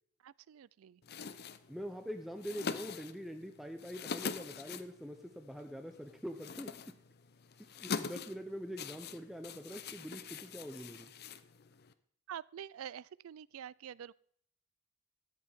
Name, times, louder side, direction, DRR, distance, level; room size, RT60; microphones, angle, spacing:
voice 1, 0.2-1.0 12.3-14.1, right 9 dB, 90° right, 0.3 m, -47 dB
sound 1, 1.0-11.9, left 5 dB, 50° left, 0.7 m, -44 dB
voice 2, 1.7-6.9 7.6-11.1, equal, ahead, 0.7 m, -44 dB
13.5 x 10.0 x 3.6 m
head